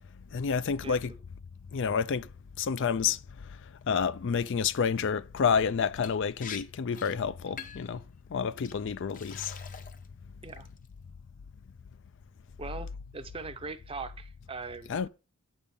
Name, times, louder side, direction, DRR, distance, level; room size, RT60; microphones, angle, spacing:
voice 1, 0.3-1.1 1.7-2.3 2.6-3.2 3.9-8.0 8.3-9.5 14.9-15.1, left 6 dB, 55° left, 0.4 m, -29 dB
voice 2, 0.8-1.2 10.4-10.7 12.6-15.1, right 4 dB, 25° right, 0.6 m, -41 dB
Liquid, 6.0-6.2 6.4-6.6 6.9-7.2 7.6-7.9 8.6-8.7 9.1-10.1 10.4-10.9, left 7 dB, 35° left, 0.7 m, -43 dB
8.3 x 5.3 x 6.9 m
head